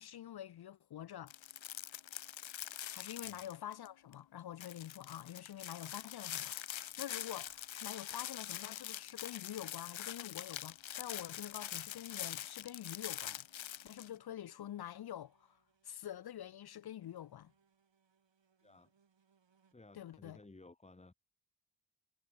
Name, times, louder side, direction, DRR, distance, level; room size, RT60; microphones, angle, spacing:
voice 1, 0.0-1.3 2.9-6.6 7.0-13.5 13.8-15.6 15.8-17.5 19.9-20.4, left 11 dB, 60° left, 0.5 m, -47 dB
sound 1, 1.3-3.9 4.1-4.2 4.6-14.1, left 11 dB, 90° left, 0.8 m, -44 dB
sound 2, 4.8-11.7, right 3 dB, 35° right, 7.9 m, -83 dB
sound 3, 9.0-19.7, right 6 dB, 70° right, 6.2 m, -77 dB
voice 2, 19.7-21.1, left 2 dB, 15° left, 1.0 m, -58 dB
cardioid pair, 70°, 45 cm